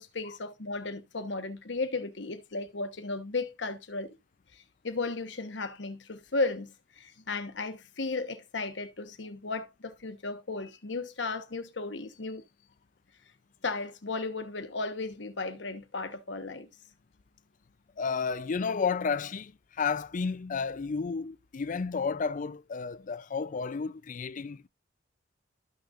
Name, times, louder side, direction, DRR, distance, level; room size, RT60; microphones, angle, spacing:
voice 1, 0.0-4.2 4.5-6.7 7.0-12.4 13.6-16.7, left 3 dB, 75° left, 1.2 m, -35 dB
voice 2, 18.0-24.7, left 5 dB, 45° left, 0.5 m, -32 dB
13.0 x 6.3 x 2.5 m
head